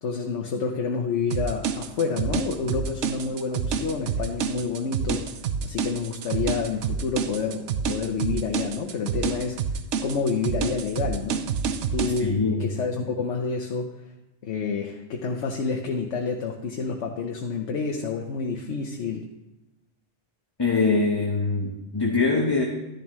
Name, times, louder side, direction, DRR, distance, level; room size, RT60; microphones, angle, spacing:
voice 1, 0.0-5.3 5.6-9.6 10.0-11.4 11.9-13.9 14.4-19.2, left 5 dB, 80° left, 2 dB, 1.2 m, -28 dB
sound 1, 1.3-12.2, right 6 dB, 80° right, 1.0 m, -28 dB
voice 2, 12.2-12.7 20.6-22.7, left 3 dB, 20° left, -1 dB, 1.0 m, -23 dB
12.0 x 10.5 x 3.1 m, 1.0 s
omnidirectional pair, 1.2 m